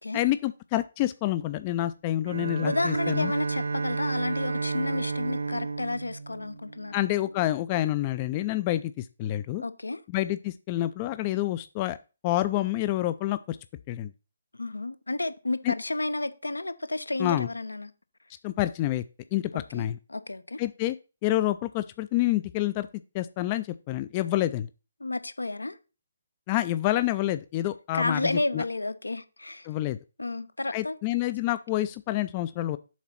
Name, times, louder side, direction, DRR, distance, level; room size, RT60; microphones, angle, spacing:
voice 1, 0.1-3.3 6.9-9.6 10.1-12.0 12.2-13.6 13.9-14.1 15.6-15.7 17.2-17.5 18.4-19.0 19.3-20.0 20.6-21.0 21.2-22.9 23.1-24.7 26.5-28.6 29.7-30.0 30.7-32.8, left 15 dB, 25° left, 0.3 m, -28 dB
Bowed string instrument, 2.2-7.3, right 4 dB, 60° right, 0.7 m, -32 dB
voice 2, 2.6-7.2 9.6-10.0 14.6-17.9 19.5-20.6 25.0-25.8 27.9-29.7 30.2-31.0, left 2 dB, 75° left, 0.8 m, -31 dB
7.2 x 3.9 x 5.8 m
figure-of-eight pair, 140°, 0 cm